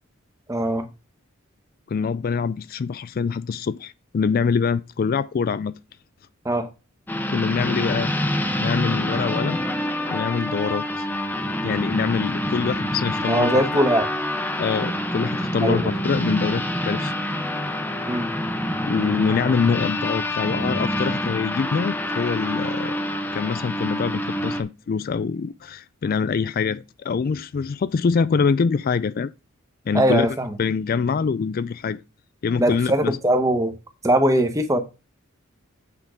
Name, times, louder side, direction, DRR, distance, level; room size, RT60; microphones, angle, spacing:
voice 1, 0.5-0.9 6.4-6.7 13.3-14.1 15.6-15.9 18.1-18.3 29.9-30.6 32.6-33.7 34.0-34.8, right 1 dB, 15° right, 1.0 m, -21 dB
voice 2, 1.9-5.8 7.3-8.1 8.6-9.6 10.1-11.1 11.6-13.8 14.6-17.1 18.8-23.0 23.3-29.3 29.9-32.0 32.4-33.2, left 5 dB, 45° left, 0.3 m, -24 dB
sound 1, 7.1-24.6, left 1 dB, 10° left, 0.7 m, -26 dB
8.3 x 3.7 x 5.1 m
head